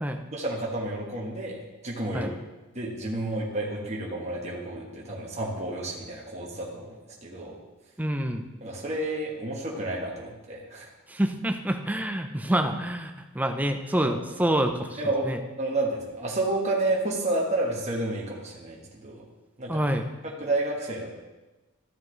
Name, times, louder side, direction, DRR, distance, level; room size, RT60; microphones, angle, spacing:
voice 1, 0.3-1.6 1.8-2.3 2.7-6.9 7.2-7.5 8.6-10.9 14.0-14.2 15.0-15.3 15.6-19.2 19.6-19.8 20.2-21.1, right 2 dB, 30° right, -3 dB, 1.3 m, -30 dB
voice 2, 8.0-8.5 11.1-15.4 19.7-20.1, right 1 dB, 5° right, 5 dB, 0.5 m, -27 dB
13.5 x 7.3 x 3.2 m, 1.1 s
head